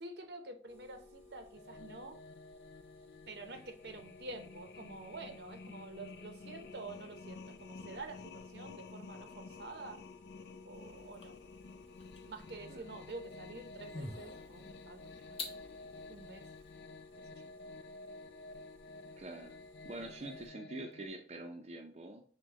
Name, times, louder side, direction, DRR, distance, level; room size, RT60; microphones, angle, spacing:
voice 1, 0.0-2.2 3.3-10.0 10.6-11.3 12.3-15.8 16.1-16.5, right 2 dB, 70° right, 6 dB, 0.7 m, -48 dB
sound 1, 0.7-20.5, left 2 dB, 10° left, 1.0 m, -59 dB
sound 2, 1.6-21.1, left 3 dB, 70° left, 0.4 m, -52 dB
sound 3, 10.7-16.8, left 2 dB, 35° left, 0.8 m, -50 dB
voice 2, 19.2-19.5 19.8-22.2, right 2 dB, 35° right, 2 dB, 0.5 m, -45 dB
6.1 x 2.2 x 3.9 m, 0.43 s
head